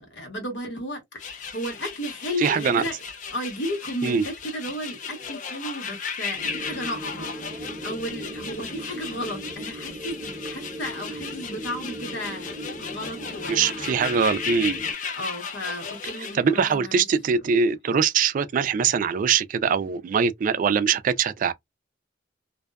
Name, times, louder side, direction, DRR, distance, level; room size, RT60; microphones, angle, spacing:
voice 1, 0.0-3.0 3.3-12.5 12.8-13.6 15.1-17.0, equal, 80° left, 1.2 m, -34 dB
sound 1, 1.2-16.4, left 6 dB, 45° left, 0.4 m, -35 dB
voice 2, 2.4-2.8 4.0-4.2 13.5-14.8 16.3-21.5, right 6 dB, 45° right, 0.3 m, -22 dB
sound 2, 6.4-14.9, right 1 dB, 10° right, 0.8 m, -38 dB
2.6 x 2.2 x 2.3 m
head